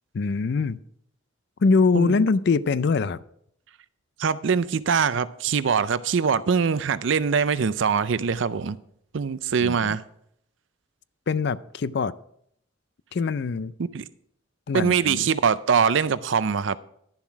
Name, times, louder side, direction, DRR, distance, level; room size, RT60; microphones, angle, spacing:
voice 1, 0.1-0.8 1.6-3.2 9.6-10.0 11.3-12.1 13.1-13.7 14.7-15.2, left 4 dB, 55° left, 0.4 m, -23 dB
voice 2, 1.9-2.3 4.2-8.8 9.1-10.0 13.9-14.1 14.7-16.8, right 6 dB, 65° right, 0.5 m, -23 dB
11.5 x 7.3 x 4.7 m
head